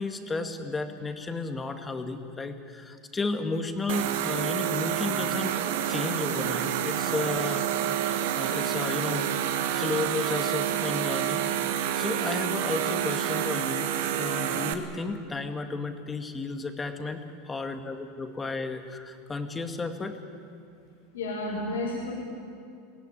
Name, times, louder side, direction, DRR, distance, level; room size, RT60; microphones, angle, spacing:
voice 1, 0.0-5.6 5.9-7.7 8.4-9.3 9.7-11.5 11.9-13.9 14.2-20.2, left 3 dB, 15° left, 6 dB, 2.1 m, -33 dB
sound 1, 3.9-14.7, right 10 dB, 75° right, 1.6 m, -28 dB
voice 2, 21.1-22.1, left 2 dB, 90° left, -2 dB, 5.1 m, -31 dB
22.5 x 17.0 x 10.0 m, 2.4 s
hypercardioid pair, 105°, 0 cm